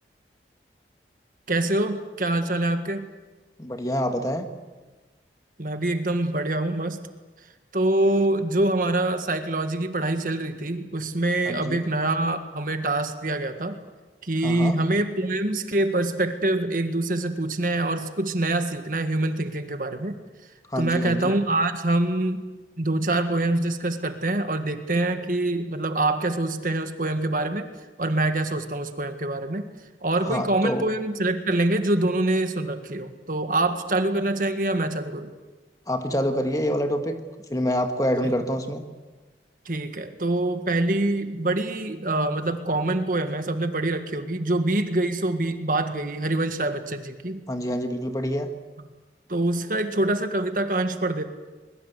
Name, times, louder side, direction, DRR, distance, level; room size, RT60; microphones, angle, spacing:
voice 1, 1.5-3.1 5.6-7.0 7.7-13.8 14.2-20.2 20.8-22.4 22.8-27.7 28.0-29.6 30.0-35.3 39.7-47.4 49.3-51.2, right 2 dB, 50° right, 8 dB, 1.7 m, -25 dB
voice 2, 3.6-4.5 11.5-11.8 14.4-14.8 20.7-21.4 30.2-30.9 35.9-37.2 37.5-38.8 47.5-48.5, equal, 20° left, 6 dB, 1.8 m, -26 dB
23.5 x 22.0 x 8.3 m, 1.2 s
head